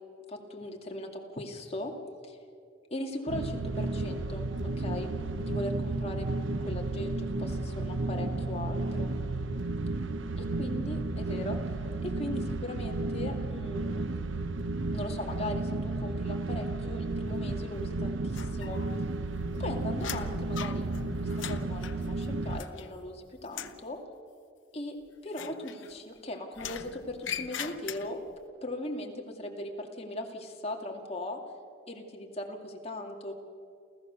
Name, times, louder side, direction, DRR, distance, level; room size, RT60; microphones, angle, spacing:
voice 1, 0.3-1.9 2.2-2.4 2.9-4.5 4.8-6.3 6.7-9.1 10.4-11.6 12.0-14.0 14.9-18.8 19.6-20.9 21.2-24.0 24.7-25.0 25.2-28.2 28.6-31.4 31.9-33.3, left 1 dB, 35° left, 2 dB, 2.3 m, -39 dB
sound 1, 3.3-22.6, right 2 dB, 85° right, 0.8 m, -33 dB
sound 2, 18.3-19.1 19.4-23.1 23.4-23.9 25.3-26.2 26.5-28.4, left 8 dB, 85° left, 0.9 m, -41 dB
29.0 x 14.5 x 6.8 m, 2.3 s
head